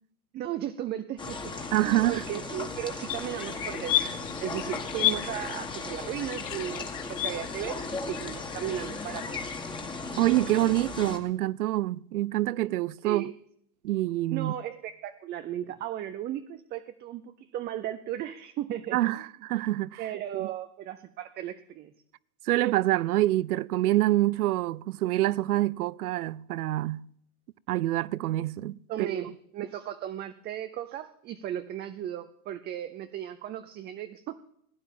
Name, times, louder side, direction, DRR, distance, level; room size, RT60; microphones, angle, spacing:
voice 1, 0.3-9.5 13.0-13.3 14.3-19.0 20.0-21.9 28.9-34.4, right 11 dB, 25° right, 0.5 m, -36 dB
sound 1, 1.2-11.2, left 3 dB, 10° left, 1.9 m, -37 dB
voice 2, 1.7-2.2 10.2-13.3 13.8-14.5 18.9-20.0 20.3-20.5 22.5-27.1 27.7-29.2, right 16 dB, 85° right, 0.6 m, -26 dB
sound 2, 3.1-9.2, left 14 dB, 65° left, 1.3 m, -34 dB
16.0 x 9.7 x 7.2 m
supercardioid pair, 130°, 44 cm